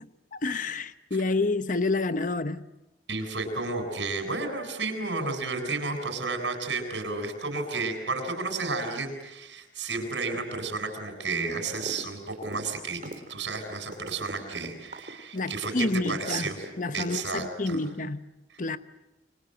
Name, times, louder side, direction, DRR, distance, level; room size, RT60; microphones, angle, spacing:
voice 1, 0.0-2.6 15.3-18.2 18.6-18.8, left 3 dB, 45° left, 1.0 m, -29 dB
voice 2, 3.1-13.0 13.3-16.5 16.9-17.8, right 3 dB, 90° right, 7.6 m, -32 dB
sound 1, 11.7-12.0 12.3-16.1 16.5-17.3, right 1 dB, 50° right, 3.5 m, -40 dB
30.0 x 25.5 x 7.9 m
head